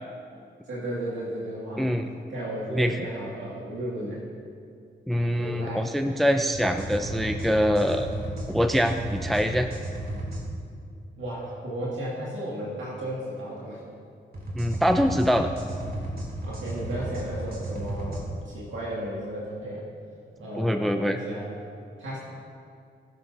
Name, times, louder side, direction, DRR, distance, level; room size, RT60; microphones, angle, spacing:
voice 1, 0.7-1.9 2.3-4.2 5.4-5.9 11.2-13.8 16.4-19.8 20.4-21.5 22.0-22.2, right 1 dB, 80° right, -6 dB, 2.1 m, -34 dB
voice 2, 1.8-2.1 2.7-3.1 5.1-8.1 8.5-9.7 14.5-15.5 20.6-21.2, equal, ahead, 6 dB, 0.5 m, -24 dB
sound 1, 6.5-10.4 14.3-18.2, right 1 dB, 50° right, 2.6 m, -34 dB
19.5 x 6.9 x 2.7 m, 2.3 s
cardioid pair, 70°, 20 cm